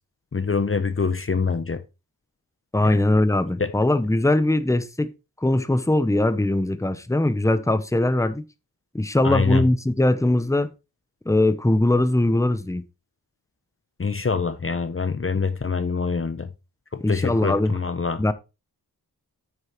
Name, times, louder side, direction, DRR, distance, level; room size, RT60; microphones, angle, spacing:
voice 1, 0.3-1.8 2.9-3.0 3.6-3.7 9.2-9.6 14.0-16.5 16.9-18.2, left 5 dB, 35° left, 0.8 m, -25 dB
voice 2, 2.7-5.1 5.4-8.4 8.9-10.7 11.2-12.8 17.0-17.8 18.2-18.3, left 1 dB, 10° left, 1.0 m, -21 dB
9.1 x 6.6 x 4.6 m
wide cardioid pair, 75°, 38 cm